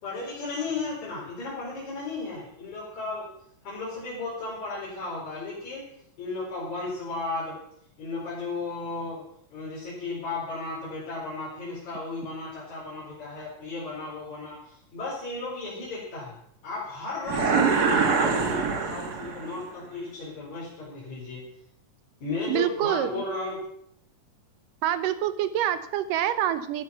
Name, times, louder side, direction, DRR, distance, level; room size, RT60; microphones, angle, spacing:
voice 1, 0.0-3.3 3.6-5.8 6.2-7.6 8.0-9.2 9.5-16.4 16.6-21.4 22.2-23.6, left 3 dB, 60° left, -7 dB, 5.8 m, -34 dB
sound 1, 17.2-19.6, right 5 dB, 40° right, 1.5 m, -24 dB
voice 2, 22.5-23.2 24.8-26.8, right 11 dB, 85° right, 12 dB, 2.6 m, -26 dB
14.0 x 11.5 x 6.0 m, 0.71 s
omnidirectional pair, 3.8 m